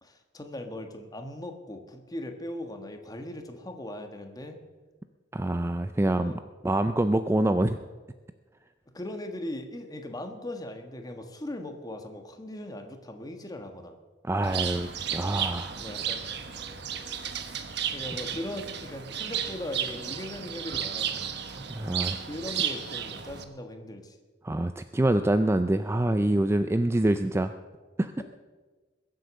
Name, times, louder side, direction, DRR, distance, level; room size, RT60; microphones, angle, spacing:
voice 1, 0.0-4.6 6.0-6.4 8.9-14.0 15.8-16.3 17.9-21.3 22.3-24.2, left 1 dB, 20° left, 5 dB, 1.4 m, -39 dB
voice 2, 5.3-6.3 6.6-7.8 14.2-15.8 21.5-22.2 22.5-22.6 24.4-27.5 28.0-28.2, right 1 dB, 15° right, 10 dB, 0.4 m, -26 dB
Bird, 14.4-23.4, right 8 dB, 60° right, 1.2 m, -33 dB
21.5 x 7.9 x 6.3 m, 1.3 s
head